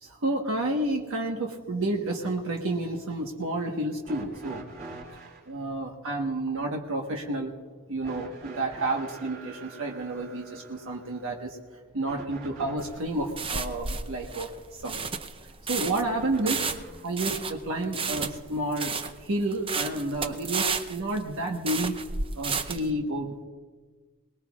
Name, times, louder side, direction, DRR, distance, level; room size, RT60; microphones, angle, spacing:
voice 1, 0.0-4.6 5.5-7.5 7.9-11.6 11.9-14.5 14.8-15.1 15.4-16.6 17.0-21.9 22.4-23.4, right 2 dB, 65° right, 1 dB, 1.2 m, -30 dB
sound 1, 4.0-5.5 8.0-13.1 16.1-17.1 18.4-18.5 19.5-19.6, right 3 dB, 45° right, 3.7 m, -45 dB
sound 2, 12.8-22.9, right 5 dB, 25° right, 0.6 m, -32 dB
23.0 x 19.5 x 2.4 m, 1.4 s
head